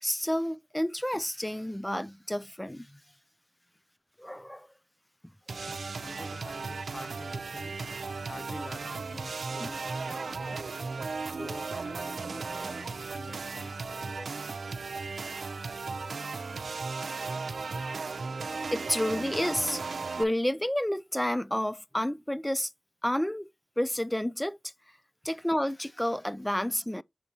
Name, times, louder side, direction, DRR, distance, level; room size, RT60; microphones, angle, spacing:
voice 1, 0.0-3.0 4.2-4.7 5.7-5.8 9.6-9.8 18.7-19.8 20.2-22.7 23.0-23.5 23.8-24.6 25.2-27.0, left 1 dB, 10° left, 0.4 m, -30 dB
sound 1, 5.5-20.2, right 4 dB, 85° right, 0.7 m, -36 dB
voice 2, 6.0-7.8 8.2-10.7 11.3-14.6, left 2 dB, 50° left, 1.0 m, -47 dB
7.5 x 5.3 x 2.8 m
cardioid pair, 50°, 0 cm